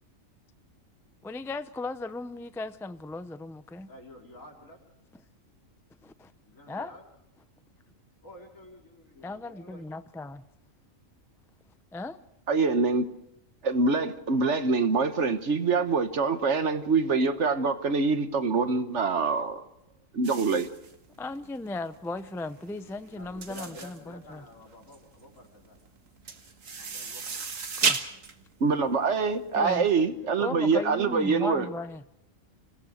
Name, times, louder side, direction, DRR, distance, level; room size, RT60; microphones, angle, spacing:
voice 1, 1.2-3.9 6.0-6.3 6.7-6.9 9.2-10.4 11.9-12.2 21.2-24.5 27.8-28.0 29.5-29.9 30.4-32.0, left 2 dB, 5° left, 12 dB, 0.4 m, -36 dB
voice 2, 3.9-4.8 6.4-7.0 8.2-9.9 22.8-25.8 26.8-27.5 31.5-31.7, left 1 dB, 85° left, -1 dB, 5.0 m, -49 dB
voice 3, 12.5-13.1 13.6-19.6 20.1-20.7 28.6-31.7, right 4 dB, 65° right, 10 dB, 1.5 m, -25 dB
sound 1, 20.2-29.9, right 5 dB, 80° right, 1.9 m, -34 dB
26.5 x 17.0 x 6.4 m, 0.79 s
omnidirectional pair, 1.4 m